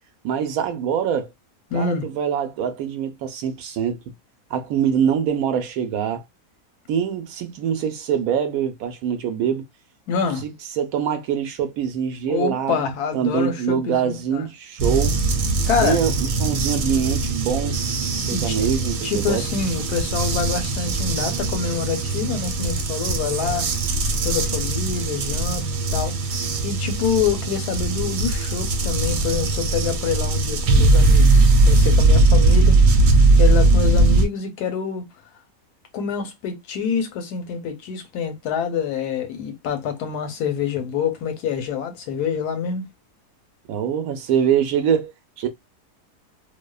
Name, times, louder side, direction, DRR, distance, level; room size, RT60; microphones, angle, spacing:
voice 1, 0.2-1.3 1.7-4.0 4.5-6.2 6.9-9.6 10.4-15.2 15.8-17.8 18.3-19.4 43.7-45.1 45.4-45.5, right 8 dB, 70° right, 1.0 m, -24 dB
voice 2, 1.7-2.1 10.1-10.4 12.3-14.4 15.7-16.0 18.3-18.6 19.0-23.7 24.2-25.6 25.9-26.1 26.6-32.8 33.4-35.0 35.9-42.9, left 6 dB, 85° left, 1.2 m, -26 dB
sound 1, 14.8-34.3, right 2 dB, 90° right, 1.2 m, -19 dB
2.7 x 2.1 x 2.2 m
omnidirectional pair, 1.6 m